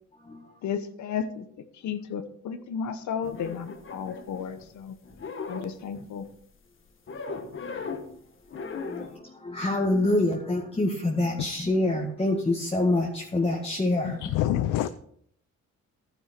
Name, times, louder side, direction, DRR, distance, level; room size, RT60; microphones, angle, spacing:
voice 1, 0.6-1.5 1.7-5.0 5.5-6.3, left 7 dB, 70° left, 10 dB, 1.0 m, -33 dB
sound 1, 3.2-4.8 5.0-6.3 7.1-8.2 8.5-9.2, left 4 dB, 45° left, 1.7 m, -38 dB
voice 2, 8.6-14.3, left 2 dB, 20° left, -1 dB, 1.9 m, -26 dB
voice 3, 14.0-14.9, left 13 dB, 85° left, 12 dB, 0.6 m, -26 dB
11.5 x 9.9 x 4.5 m, 0.66 s
cardioid pair, 90°, 30 cm